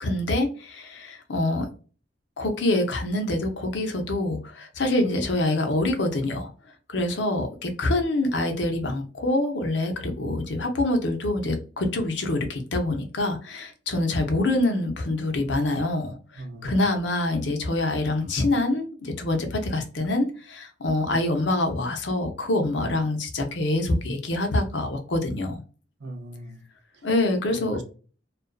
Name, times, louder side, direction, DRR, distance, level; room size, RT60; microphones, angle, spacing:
voice 1, 0.0-1.7 2.4-6.5 6.9-25.6 27.0-27.8, left 2 dB, 80° left, 0.7 m, -25 dB
voice 2, 16.4-16.8 26.0-26.6 27.5-27.8, right 1 dB, 70° right, 0.6 m, -40 dB
2.4 x 2.3 x 2.3 m
head